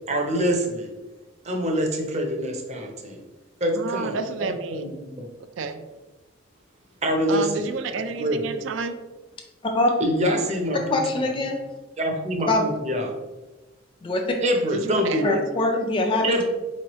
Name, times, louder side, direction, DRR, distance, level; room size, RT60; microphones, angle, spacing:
voice 1, 0.1-0.9 1.4-3.2 3.6-4.2 4.5-4.9 5.2-5.3 7.0-7.7 8.1-8.4 10.0-10.8 11.1-11.2 12.0-13.1 14.4-15.4 16.2-16.5, equal, 35° right, 2 dB, 0.7 m, -25 dB
voice 2, 3.7-4.9 5.6-5.8 7.3-9.0 14.7-15.5, right 4 dB, 70° right, 9 dB, 0.4 m, -30 dB
voice 3, 10.9-11.6 12.5-12.6 14.0-14.3 15.2-16.4, left 2 dB, 25° left, 2 dB, 0.4 m, -23 dB
4.4 x 3.1 x 3.0 m, 1.2 s
head